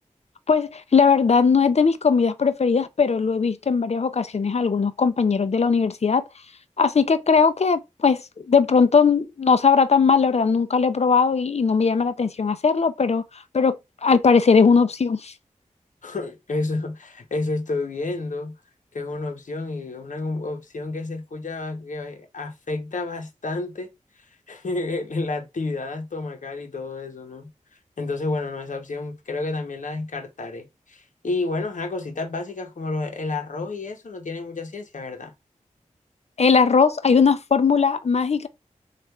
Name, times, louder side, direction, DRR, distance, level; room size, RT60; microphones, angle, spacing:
voice 1, 0.5-6.2 6.8-13.2 13.5-15.3 36.4-38.5, left 5 dB, 55° left, 0.5 m, -19 dB
voice 2, 16.0-18.5 18.9-23.9 24.5-27.5 28.0-35.3, left 3 dB, 70° left, 0.9 m, -30 dB
3.3 x 2.5 x 4.4 m
wide cardioid pair, 55°, 13 cm